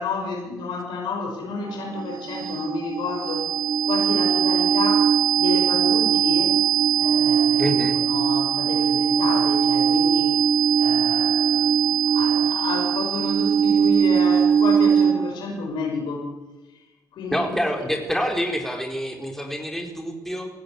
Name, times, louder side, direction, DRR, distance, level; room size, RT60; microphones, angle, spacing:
voice 1, 0.0-3.4 3.8-6.6 7.0-10.5 10.8-16.4 17.1-17.6, left 3 dB, 75° left, 1 dB, 5.9 m, -30 dB
sound 1, 1.5-15.4, right 8 dB, 60° right, 1.7 m, -20 dB
voice 2, 7.6-8.0 17.3-20.5, equal, 5° left, 3 dB, 4.5 m, -27 dB
17.0 x 16.5 x 9.8 m, 1.1 s
hypercardioid pair, 45°, 8 cm